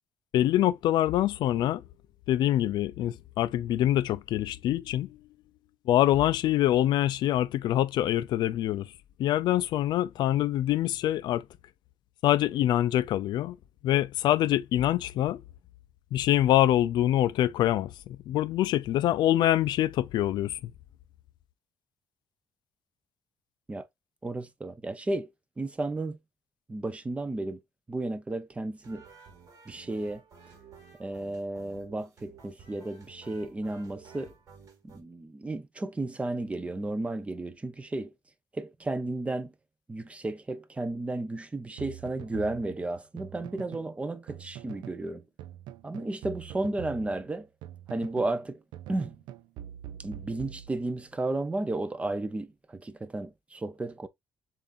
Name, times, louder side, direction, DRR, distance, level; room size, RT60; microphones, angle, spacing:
voice 1, 0.3-1.8 2.3-5.1 5.9-8.9 9.2-11.4 12.2-13.6 13.8-15.4 16.1-20.7, left 13 dB, 70° left, 0.4 m, -25 dB
voice 2, 24.2-25.3 25.6-26.2 26.7-27.6 27.9-29.0 29.7-30.2 31.0-34.3 34.8-38.1 38.5-39.5 39.9-45.2 45.8-47.5 47.9-48.6 48.9-49.1 50.0-54.1, right 2 dB, 15° right, 0.6 m, -33 dB
sound 1, 28.8-35.0, right 6 dB, 45° right, 2.0 m, -53 dB
sound 2, 41.8-43.9 44.3-45.0 45.4-48.4 48.7-51.1, right 12 dB, 85° right, 0.5 m, -44 dB
7.0 x 2.6 x 2.5 m
cardioid pair, 120°, 8 cm